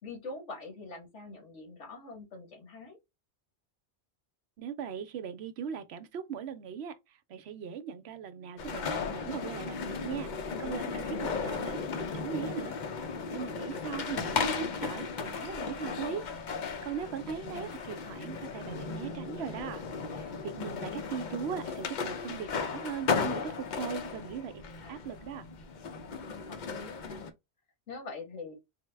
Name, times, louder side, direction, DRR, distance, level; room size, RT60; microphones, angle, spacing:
voice 1, 0.0-3.0 17.5-18.0 24.8-25.6 26.5-27.3 27.9-28.5, left 3 dB, 90° left, 1.6 m, -45 dB
voice 2, 4.6-6.9 7.3-12.7 13.3-16.2 16.8-19.8 20.1-24.6 24.9-25.5, right 7 dB, 70° right, 0.8 m, -39 dB
sound 1, 8.6-27.3, left 5 dB, 50° left, 0.6 m, -36 dB
4.4 x 2.1 x 3.3 m
omnidirectional pair, 1.2 m